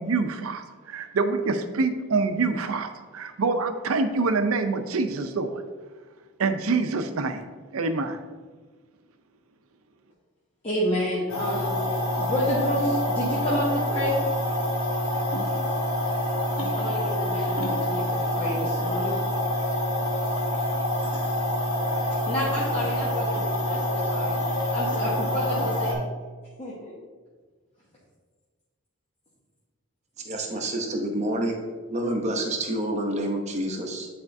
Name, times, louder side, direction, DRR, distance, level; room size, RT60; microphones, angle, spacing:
voice 1, 0.0-5.6 6.4-7.4 7.7-8.2, right 3 dB, 90° right, 8 dB, 0.6 m, -26 dB
voice 2, 10.6-11.8 12.2-14.2 16.7-19.2 22.3-24.4 24.7-26.0 26.6-26.9, equal, 30° left, -7 dB, 1.0 m, -29 dB
sound 1, 11.3-25.9, left 1 dB, 90° left, 1.2 m, -26 dB
voice 3, 30.2-31.6 31.9-34.1, right 1 dB, 30° right, 2 dB, 0.8 m, -28 dB
9.6 x 4.3 x 2.6 m, 1.4 s
head